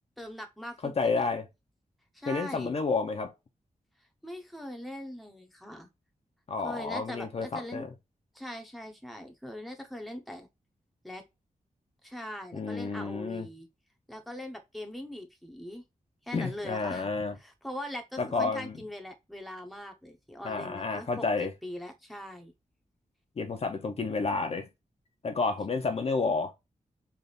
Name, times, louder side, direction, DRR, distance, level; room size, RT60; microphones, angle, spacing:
voice 1, 0.2-1.3 2.1-2.8 4.2-5.9 6.6-7.9 8.3-10.5 11.0-11.2 12.0-13.7 14.1-15.8 16.2-17.1 17.4-21.3 21.6-22.5, left 1 dB, ahead, 0.8 m, -41 dB
voice 2, 0.8-1.5 2.3-3.3 6.5-7.9 12.5-13.5 16.3-17.3 18.2-18.8 20.4-21.5 23.4-24.7 25.2-26.5, left 4 dB, 45° left, 0.7 m, -30 dB
3.4 x 2.5 x 3.9 m
wide cardioid pair, 125°, 14 cm